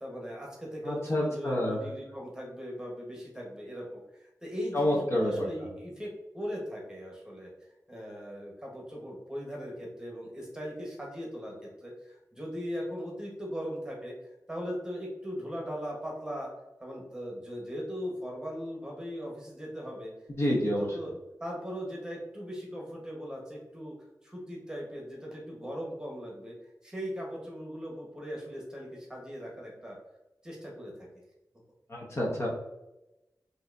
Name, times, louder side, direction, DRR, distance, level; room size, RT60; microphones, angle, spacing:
voice 1, 0.0-7.5 7.9-14.1 14.5-16.5 16.8-20.1 20.5-21.1 21.4-23.9 24.2-26.5 26.8-30.0 30.4-30.9, equal, 10° right, -2 dB, 1.3 m, -39 dB
voice 2, 0.8-1.8 4.7-5.3 20.4-20.8 31.9-32.5, left 1 dB, 40° left, -3 dB, 1.0 m, -28 dB
5.6 x 2.8 x 2.6 m, 0.95 s
wide cardioid pair, 105°, 7 cm